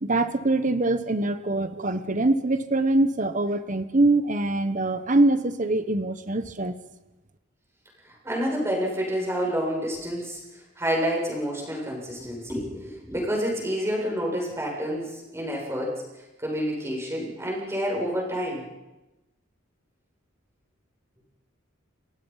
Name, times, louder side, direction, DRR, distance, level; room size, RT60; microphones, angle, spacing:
voice 1, 0.0-6.7, right 2 dB, 35° right, 10 dB, 1.1 m, -23 dB
voice 2, 8.0-16.0 16.4-18.6, equal, 15° right, -1 dB, 7.3 m, -29 dB
29.5 x 23.0 x 5.8 m, 1.0 s
head